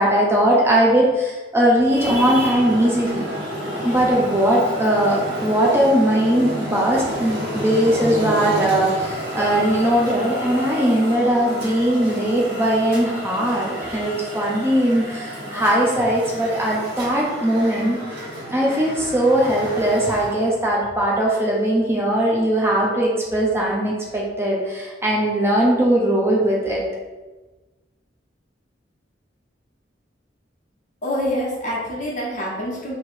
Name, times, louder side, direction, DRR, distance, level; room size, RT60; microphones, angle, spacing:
voice 1, 0.0-3.3 3.8-18.0 18.5-26.8, right 1 dB, 15° right, -3 dB, 0.6 m, -19 dB
Traffic noise roadway noise, 1.8-20.5, equal, 65° right, 1.3 m, -30 dB
voice 2, 31.0-32.9, equal, 45° left, -5 dB, 1.2 m, -26 dB
3.1 x 3.1 x 4.6 m, 1.2 s
head